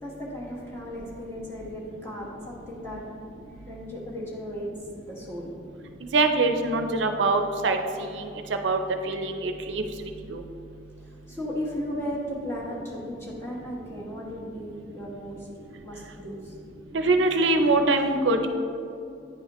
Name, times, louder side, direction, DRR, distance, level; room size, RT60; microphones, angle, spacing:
voice 1, 0.0-3.0 3.5-4.7 5.1-5.5 11.0-15.5 15.8-16.5, equal, 15° left, -5 dB, 1.3 m, -36 dB
voice 2, 6.1-7.8 8.1-8.3 8.6-8.8 9.0-9.8 10.3-10.4 16.9-18.5, right 3 dB, 80° right, 6 dB, 0.5 m, -23 dB
9.8 x 4.1 x 3.0 m, 2.5 s
head